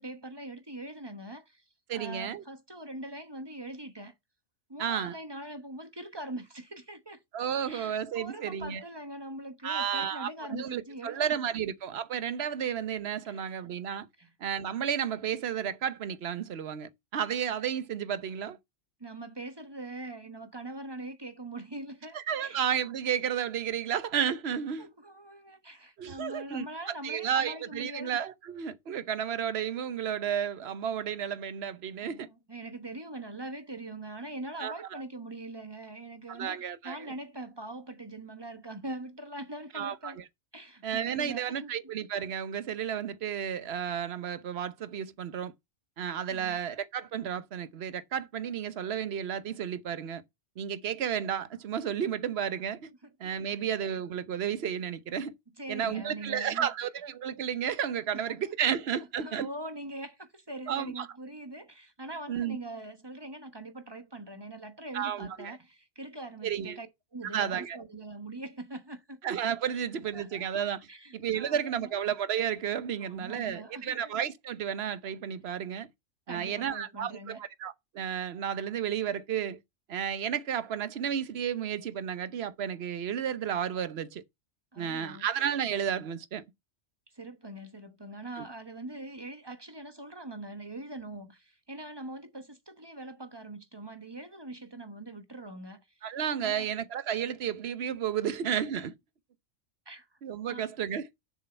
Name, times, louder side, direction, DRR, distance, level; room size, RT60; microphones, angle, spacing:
voice 1, 0.0-1.6 1.9-4.1 4.7-7.2 7.6-11.4 13.2-13.6 14.2-14.3 19.0-22.6 24.8-28.1 32.0-40.2 40.5-41.7 46.3-46.6 52.9-53.1 53.5-53.7 55.6-56.7 58.1-58.5 59.0-69.2 69.7-69.8 70.1-70.5 70.9-71.9 73.0-74.0 76.3-77.4 84.7-85.3 87.1-95.9 96.4-96.7 99.9-100.1 100.5-100.6, right 2 dB, 20° right, 1.1 m, -42 dB
voice 2, 1.9-2.4 4.8-5.1 7.3-8.8 9.6-14.1 14.4-18.6 22.1-24.9 26.0-26.6 27.0-32.3 34.6-35.0 36.3-37.1 39.7-40.2 40.8-45.5 46.0-50.2 50.6-52.9 53.2-55.3 55.7-59.5 60.7-61.1 62.3-62.6 64.9-65.6 66.4-66.8 67.2-67.8 69.2-70.8 71.1-75.9 76.3-79.6 79.9-84.2 84.8-86.4 88.4-88.5 96.0-98.9 100.2-101.1, right 8 dB, 60° right, 1.1 m, -32 dB
7.2 x 6.4 x 4.4 m
omnidirectional pair, 1.3 m